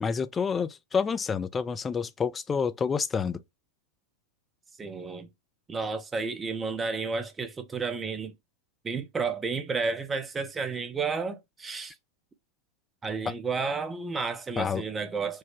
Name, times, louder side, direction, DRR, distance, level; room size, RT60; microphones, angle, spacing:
voice 1, 0.0-3.4 14.6-14.8, left 6 dB, 20° left, 0.4 m, -28 dB
voice 2, 4.8-5.3 5.7-8.3 8.8-11.9 13.0-15.4, right 4 dB, 15° right, 0.7 m, -31 dB
4.7 x 2.1 x 4.3 m
figure-of-eight pair, 90°, 0 cm